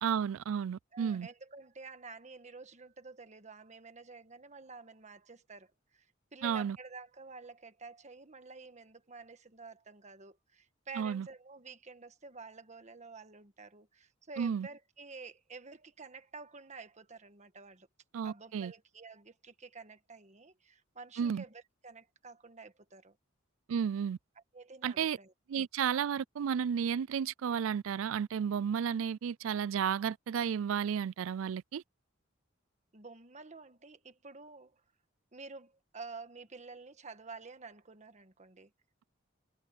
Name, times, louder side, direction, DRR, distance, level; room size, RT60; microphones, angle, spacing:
voice 1, 0.0-1.3 6.4-6.8 11.0-11.3 14.4-14.7 18.1-18.7 21.2-21.4 23.7-24.2 24.8-25.2 25.5-31.8, right 7 dB, 85° right, 0.4 m, -32 dB
voice 2, 0.9-17.9 18.2-23.2 24.5-25.3 32.9-34.8 35.3-38.7, right 4 dB, 35° right, 1.5 m, -50 dB
head